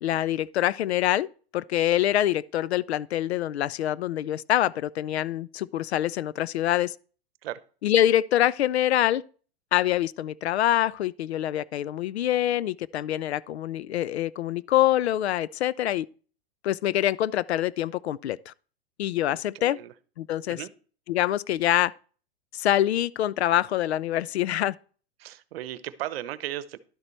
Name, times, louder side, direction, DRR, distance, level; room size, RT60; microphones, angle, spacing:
voice 1, 0.0-1.3 1.5-6.9 7.8-9.2 9.7-16.1 16.6-18.5 19.0-19.8 20.2-20.6 21.1-21.9 22.5-24.7, left 12 dB, 90° left, 0.5 m, -25 dB
voice 2, 19.3-19.9 20.5-20.7 25.2-26.8, right 13 dB, 65° right, 0.8 m, -36 dB
11.5 x 6.7 x 4.4 m
hypercardioid pair, 125°, 31 cm